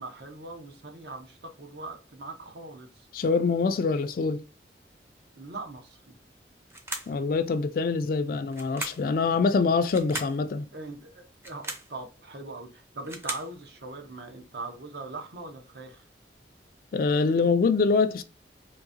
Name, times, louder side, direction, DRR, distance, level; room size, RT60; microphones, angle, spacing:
voice 1, 0.0-3.1 5.3-6.1 9.7-9.8 10.7-16.0, right 2 dB, 65° right, 0.8 m, -41 dB
voice 2, 3.1-4.4 7.1-10.7 16.9-18.2, left 4 dB, 50° left, 0.3 m, -24 dB
sound 1, 6.7-7.2 8.5-9.1 9.9-10.4 11.3-11.9 12.8-13.5, right 1 dB, 15° right, 0.5 m, -37 dB
3.8 x 2.6 x 2.6 m
head